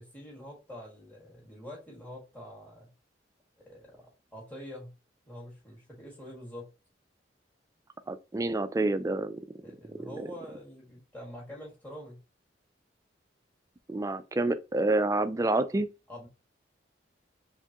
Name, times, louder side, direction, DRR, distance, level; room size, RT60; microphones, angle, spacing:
voice 1, 0.0-2.9 3.6-4.9 5.3-6.7 9.6-12.2 16.1-16.3, equal, 10° left, 1.8 m, -45 dB
voice 2, 8.1-9.4 10.0-10.3 13.9-15.9, right 2 dB, 15° right, 0.3 m, -28 dB
4.4 x 3.4 x 2.9 m
head